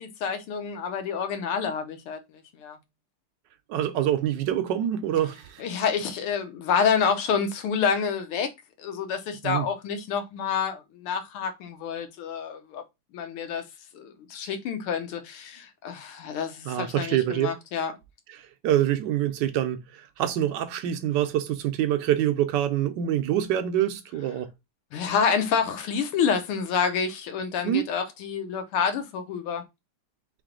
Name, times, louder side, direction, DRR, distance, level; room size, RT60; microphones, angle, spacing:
voice 1, 0.0-2.2 2.6-2.8 5.6-8.5 8.8-12.8 13.1-13.6 13.9-17.9 24.9-29.6, left 6 dB, 80° left, 1.7 m, -28 dB
voice 2, 3.7-5.6 9.4-9.7 16.7-17.5 18.6-24.5 27.6-27.8, right 11 dB, 70° right, 1.1 m, -25 dB
4.0 x 3.3 x 3.7 m
omnidirectional pair, 2.4 m